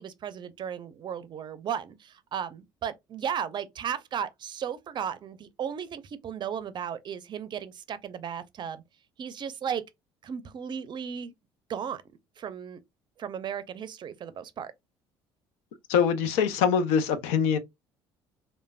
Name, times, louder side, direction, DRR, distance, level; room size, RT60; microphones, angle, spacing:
voice 1, 0.0-8.8 9.2-9.8 10.2-11.3 11.7-12.0 12.4-12.8 13.2-14.7, right 8 dB, 45° right, 0.5 m, -35 dB
voice 2, 15.9-17.6, left 7 dB, 80° left, 0.5 m, -23 dB
3.2 x 2.1 x 2.3 m
supercardioid pair, 80°, 11 cm